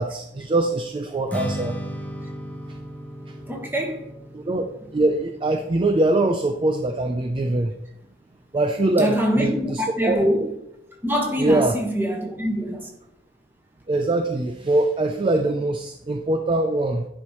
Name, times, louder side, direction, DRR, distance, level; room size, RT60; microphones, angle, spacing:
voice 1, 0.0-1.7 2.7-2.8 3.3-3.4 4.3-4.6 4.9-7.7 8.5-10.2 11.4-11.8 13.9-17.1, right 2 dB, 30° right, 0.4 m, -23 dB
Strum, 1.3-7.6, equal, 10° left, 0.8 m, -36 dB
voice 2, 3.5-4.0 9.0-10.5 11.0-12.9, equal, 10° right, 1.4 m, -24 dB
10.0 x 5.3 x 3.1 m
head